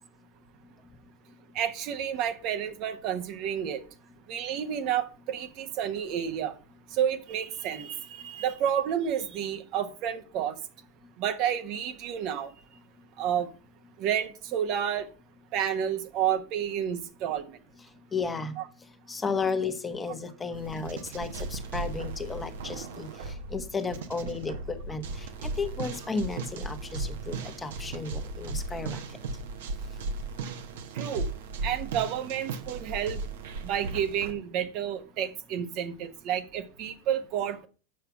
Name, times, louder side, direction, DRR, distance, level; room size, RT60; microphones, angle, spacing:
voice 1, 1.5-3.8 4.3-6.5 6.9-10.6 11.2-12.5 13.2-13.5 14.0-15.1 15.5-17.6 18.6-18.7 30.9-31.3 31.6-33.2 33.6-37.6, right 9 dB, 50° right, 1.2 m, -30 dB
voice 2, 18.1-18.6 19.1-29.0, left 4 dB, 15° left, 1.2 m, -33 dB
sound 1, 20.5-34.3, right 3 dB, 70° right, 1.2 m, -36 dB
7.5 x 5.6 x 6.0 m
hypercardioid pair, 100°, 0 cm